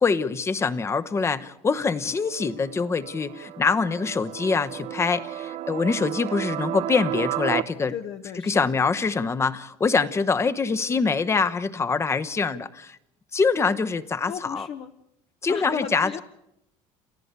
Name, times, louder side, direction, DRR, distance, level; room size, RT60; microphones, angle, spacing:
voice 1, 0.0-7.9 8.5-13.0 13.3-14.7 15.4-16.2, left 4 dB, 20° left, 12 dB, 1.0 m, -24 dB
sound 1, 2.1-7.6, right 12 dB, 50° right, 0.8 m, -33 dB
voice 2, 7.9-8.8 14.3-14.9 15.5-16.2, left 8 dB, 50° left, 7 dB, 1.0 m, -34 dB
29.0 x 14.5 x 8.2 m, 0.80 s
cardioid pair, 130°, 13 cm